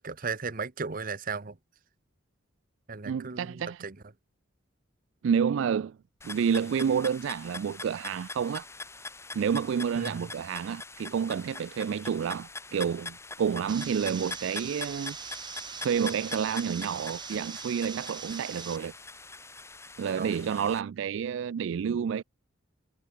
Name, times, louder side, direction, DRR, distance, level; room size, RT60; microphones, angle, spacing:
voice 1, 0.0-1.6 2.9-4.0 9.9-10.3 20.2-20.5, right 5 dB, 45° right, 1.0 m, -36 dB
voice 2, 3.1-3.8 5.2-6.0 6.2-8.7 9.3-15.2 15.8-18.9 20.0-22.2, right 7 dB, 70° right, 0.3 m, -29 dB
sound 1, 6.2-20.8, left 3 dB, 15° left, 2.4 m, -43 dB
sound 2, 13.7-18.8, right 6 dB, 20° right, 1.4 m, -41 dB
head